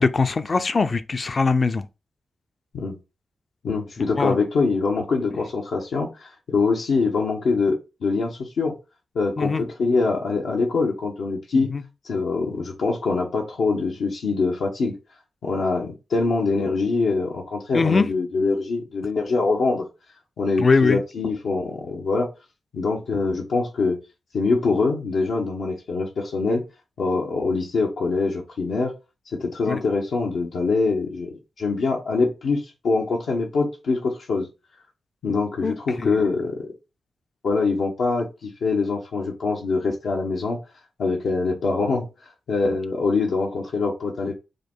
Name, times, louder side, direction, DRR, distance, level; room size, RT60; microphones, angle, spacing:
voice 1, 0.0-1.8 4.0-4.4 9.4-9.6 11.5-11.8 17.7-18.1 20.6-21.0 29.7-29.8 35.6-36.3, left 4 dB, 45° left, 0.5 m, -22 dB
voice 2, 3.6-8.8 9.1-11.7 12.0-15.0 15.4-19.9 20.4-22.3 22.7-24.0 24.3-26.6 27.0-28.9 29.3-34.5 35.2-36.7 37.4-40.6 41.0-44.4, left 4 dB, 85° left, 1.0 m, -24 dB
5.0 x 2.3 x 4.4 m
cardioid pair, 65°, 0 cm